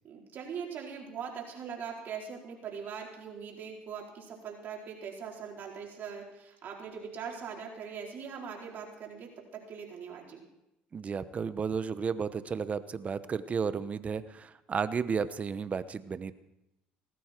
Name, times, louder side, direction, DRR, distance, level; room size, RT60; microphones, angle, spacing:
voice 1, 0.0-10.4, right 6 dB, 55° right, -1 dB, 4.6 m, -41 dB
voice 2, 10.9-16.3, right 6 dB, 35° right, 14 dB, 1.0 m, -33 dB
18.5 x 14.0 x 4.6 m, 0.89 s
supercardioid pair, 80°, 4 cm